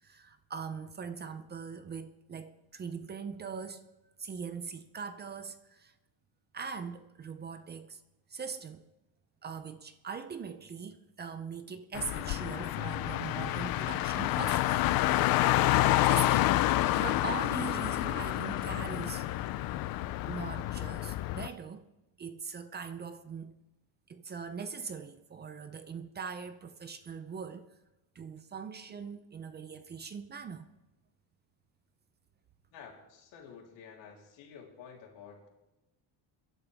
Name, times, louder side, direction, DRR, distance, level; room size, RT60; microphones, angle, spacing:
voice 1, 0.0-3.8 4.2-5.9 6.5-8.0 8.3-8.8 9.4-14.8 16.0-19.3 20.3-21.9 22.2-23.6 24.1-27.7 28.2-30.7, right 6 dB, 25° right, 0.5 m, -41 dB
Car, 11.9-21.5, left 15 dB, 55° left, 0.5 m, -28 dB
sound 1, 15.7-21.5, left 3 dB, 10° left, 1.2 m, -55 dB
voice 2, 32.7-35.5, left 6 dB, 85° left, 3.5 m, -51 dB
28.0 x 11.0 x 3.5 m
cardioid pair, 175°, 43 cm